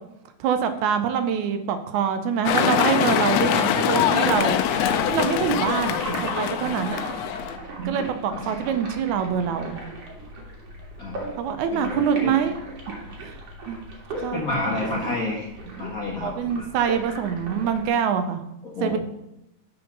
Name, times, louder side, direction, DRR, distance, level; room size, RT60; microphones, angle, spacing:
voice 1, 0.4-4.6 5.1-7.0 7.9-9.8 11.4-12.6 13.2-13.4 13.7-13.8 14.2-14.8 16.2-18.4 18.8-19.0, right 7 dB, 80° right, 9 dB, 2.2 m, -25 dB
sound 1, 2.5-7.6, left 9 dB, 75° left, 1.6 m, -23 dB
sound 2, 4.3-17.9, right 2 dB, 55° right, 2.7 m, -37 dB
voice 2, 4.7-5.5 8.4-8.6 11.0-11.3 11.7-12.5 14.3-15.5 15.8-16.8 18.6-19.0, left 2 dB, 50° left, -3 dB, 1.1 m, -31 dB
7.7 x 5.6 x 5.9 m, 0.86 s
omnidirectional pair, 3.4 m